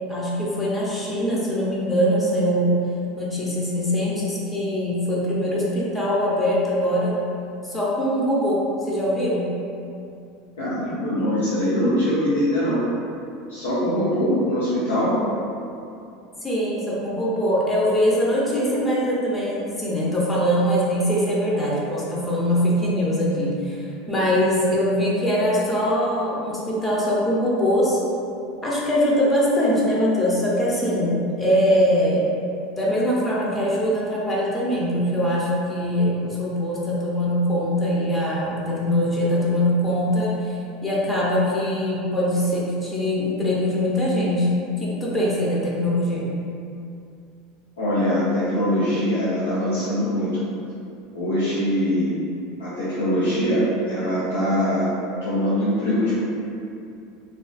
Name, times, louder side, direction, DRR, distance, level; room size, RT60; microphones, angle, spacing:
voice 1, 0.1-2.8 3.2-7.2 7.6-9.5 16.4-28.0 28.6-32.2 32.8-40.6 40.8-44.5 44.8-46.3, equal, 20° left, -6 dB, 0.6 m, -22 dB
voice 2, 10.6-12.8 13.5-15.2 47.8-50.3 51.1-52.1 52.6-54.9 55.2-56.2, equal, 85° left, -11 dB, 0.5 m, -22 dB
2.3 x 2.2 x 2.3 m, 2.6 s
hypercardioid pair, 90°, 0 cm